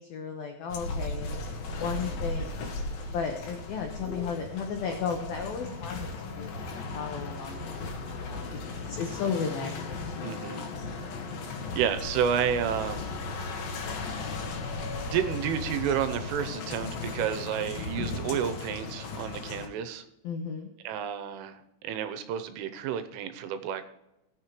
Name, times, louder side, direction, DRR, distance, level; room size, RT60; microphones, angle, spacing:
voice 1, 0.0-1.4 1.8-2.6 3.1-6.7 6.9-8.5 8.9-10.0 20.2-20.7, left 6 dB, 80° left, 3 dB, 2.1 m, -34 dB
sound 1, 0.7-19.7, left 3 dB, 60° left, 2.7 m, -36 dB
sound 2, 2.0-16.4, left 1 dB, 45° left, 3.9 m, -50 dB
voice 2, 10.2-10.6 11.7-13.1 15.1-20.0 20.8-21.6 21.8-23.8, right 8 dB, 85° right, 9 dB, 3.2 m, -30 dB
18.5 x 7.4 x 3.1 m, 0.92 s
omnidirectional pair, 5.9 m